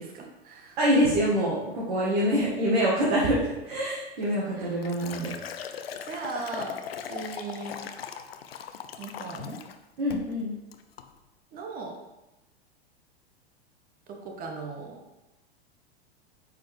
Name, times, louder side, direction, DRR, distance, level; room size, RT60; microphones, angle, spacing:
voice 1, 0.0-0.8 4.5-4.8 6.0-6.8 7.1-7.8 9.0-9.6 11.5-12.0 14.1-15.0, right 4 dB, 25° right, 2 dB, 1.2 m, -38 dB
voice 2, 0.8-5.3 10.0-10.5, equal, 50° right, -6 dB, 1.8 m, -25 dB
Liquid, 4.2-9.8 10.1-10.4 10.7-11.1, left 8 dB, 65° left, 0.6 m, -39 dB
8.3 x 4.5 x 3.4 m, 0.98 s
figure-of-eight pair, 95°, 32 cm